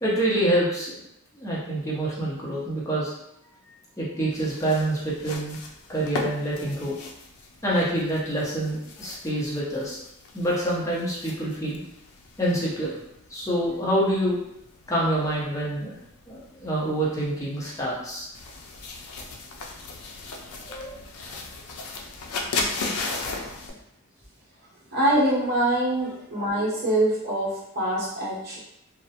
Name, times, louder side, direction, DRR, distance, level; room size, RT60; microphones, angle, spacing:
voice 1, 0.0-0.9 1.3-3.1 4.0-5.6 5.9-6.9 7.6-10.0 10.3-11.8 12.4-13.0 13.3-14.4 14.9-16.0 16.3-18.3 20.7-21.0, right 1 dB, 15° left, -6 dB, 0.6 m, -26 dB
sound 1, 4.3-23.7, left 3 dB, 80° left, 0.4 m, -37 dB
voice 2, 24.9-28.6, right 1 dB, 45° right, -6 dB, 0.8 m, -24 dB
2.3 x 2.0 x 2.7 m, 0.79 s
head